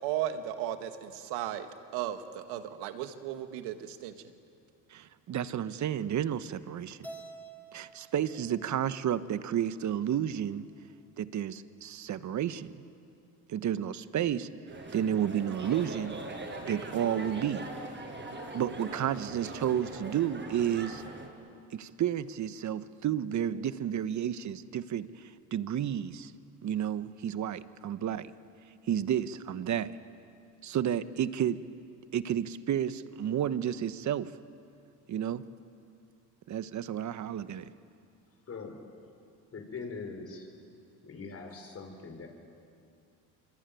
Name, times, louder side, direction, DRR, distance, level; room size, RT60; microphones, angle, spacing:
voice 1, 0.0-4.1, right 11 dB, 80° right, 8 dB, 2.0 m, -35 dB
voice 2, 4.9-7.0 7.7-10.7 11.2-12.8 13.5-14.5 14.9-16.2 16.7-17.7 18.5-21.0 21.7-26.3 26.6-28.3 28.9-29.9 30.6-31.6 32.1-34.3 35.1-35.4 36.5-37.7, right 10 dB, 45° right, 13 dB, 1.1 m, -31 dB
Keyboard (musical), 7.0-9.4, right 2 dB, 5° left, 3.7 m, -49 dB
sound 1, 14.7-21.3, right 2 dB, 30° right, 6.3 m, -41 dB
voice 3, 38.5-38.8 39.5-40.5 41.0-42.3, left 4 dB, 35° left, 4 dB, 5.9 m, -42 dB
25.5 x 24.5 x 9.2 m, 2.4 s
supercardioid pair, 95°, 39 cm